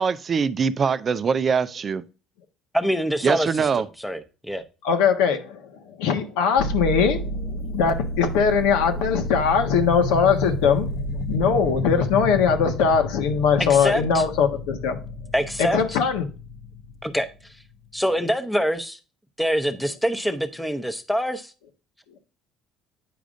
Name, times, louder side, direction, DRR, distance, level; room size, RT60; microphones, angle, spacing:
voice 1, 0.0-2.0 3.2-3.8, right 6 dB, 35° right, 0.4 m, -23 dB
voice 2, 2.7-4.6 13.6-14.2 15.3-16.0 17.0-17.3 17.9-19.0 19.4-21.5, equal, 5° left, 0.8 m, -25 dB
voice 3, 4.8-5.6 6.0-7.3 7.7-10.9 11.3-15.0 15.6-16.2, left 6 dB, 90° left, 1.3 m, -21 dB
sound 1, 6.6-18.0, left 1 dB, 70° left, 0.8 m, -30 dB
9.2 x 5.0 x 2.5 m
cardioid pair, 110°, 0 cm